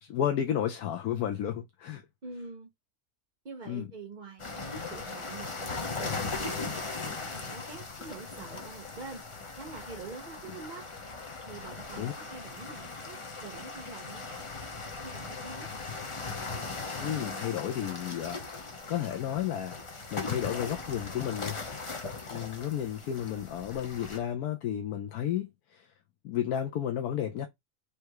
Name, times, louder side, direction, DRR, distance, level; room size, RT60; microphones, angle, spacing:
voice 1, 0.0-2.0 3.7-3.9 12.0-12.1 17.0-18.4 18.9-19.8 20.1-21.6 22.3-25.9 26.2-27.5, left 10 dB, 85° left, 1.1 m, -32 dB
voice 2, 2.2-2.7 3.4-9.2 9.6-10.9 11.2-14.4 15.0-15.7, right 4 dB, 40° right, 0.7 m, -46 dB
sound 1, 4.4-24.2, left 4 dB, 30° left, 0.6 m, -39 dB
3.4 x 3.3 x 4.7 m
omnidirectional pair, 1.6 m